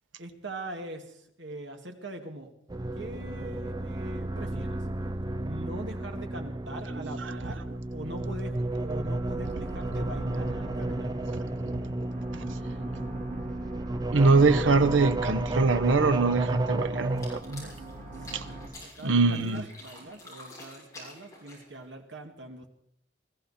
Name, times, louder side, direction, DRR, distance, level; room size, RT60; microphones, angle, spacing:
voice 1, 0.2-2.5 2.9-4.8 5.4-7.6 7.9-11.1 18.1-18.3 18.8-22.7, right 1 dB, 70° right, 2.1 m, -42 dB
sound 1, 2.7-17.4, right 2 dB, 20° right, 0.6 m, -32 dB
sound 2, 8.7-18.7, right 2 dB, 40° right, 2.8 m, -43 dB
voice 2, 14.1-17.7 19.0-19.6, right 3 dB, 90° right, 0.9 m, -23 dB
sound 3, 17.0-21.9, left 2 dB, 15° left, 6.5 m, -48 dB
21.0 x 14.5 x 4.3 m
head